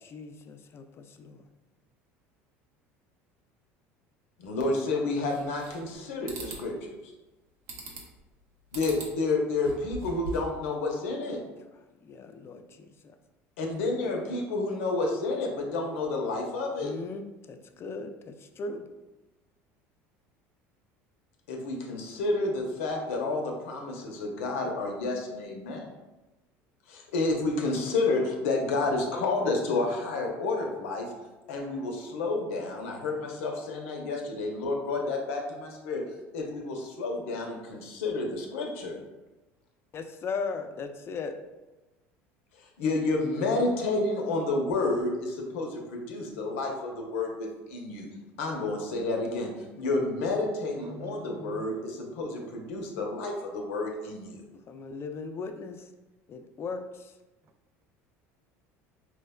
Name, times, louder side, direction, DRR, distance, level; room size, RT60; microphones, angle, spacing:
voice 1, 0.0-1.5 12.0-13.2 16.8-18.9 39.9-41.4 54.5-55.9 56.3-57.2, left 4 dB, 35° left, 0.3 m, -38 dB
voice 2, 4.4-6.9 8.7-11.4 13.6-16.9 21.5-25.9 26.9-31.1 31.5-36.0 36.3-39.0 42.8-48.1 48.4-49.5 49.8-54.4, left 3 dB, 80° left, 0.6 m, -30 dB
sound 1, 5.3-6.0 6.3-6.6 7.7-8.2 8.7-9.1 9.5-10.6, right 1 dB, 75° right, 0.7 m, -40 dB
voice 3, 50.8-51.7, right 3 dB, 45° right, 0.4 m, -45 dB
4.4 x 2.1 x 2.2 m
supercardioid pair, 85°, 7 cm